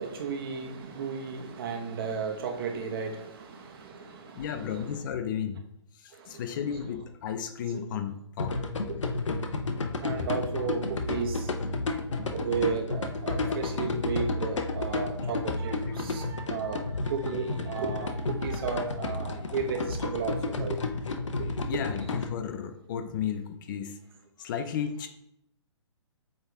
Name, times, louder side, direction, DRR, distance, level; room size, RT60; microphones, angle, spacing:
voice 1, 0.0-5.0 6.7-6.8 7.7-7.8 8.9-9.0 10.0-11.5 12.3-20.8 21.7-21.8, right 5 dB, 50° right, 3 dB, 1.3 m, -34 dB
voice 2, 4.3-5.6 5.9-8.6 10.2-10.3 13.5-13.7 15.9-16.0 21.7-24.0 24.4-25.1, left 8 dB, 40° left, 9 dB, 0.6 m, -34 dB
sound 1, 8.4-22.2, left 3 dB, 80° left, 0.8 m, -32 dB
8.0 x 3.7 x 3.5 m, 0.78 s
hypercardioid pair, 130°, 16 cm